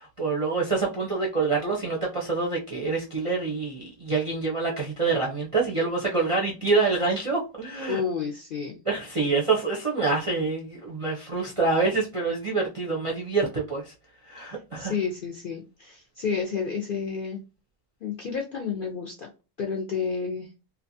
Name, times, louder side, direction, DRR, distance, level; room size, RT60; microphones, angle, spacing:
voice 1, 0.0-8.0 8.9-13.9 14.3-14.9, right 4 dB, 40° right, 0.4 m, -26 dB
voice 2, 7.9-8.8 14.8-17.4 18.0-19.3 19.6-20.5, left 6 dB, 65° left, 0.5 m, -30 dB
2.8 x 2.2 x 2.6 m
omnidirectional pair, 1.4 m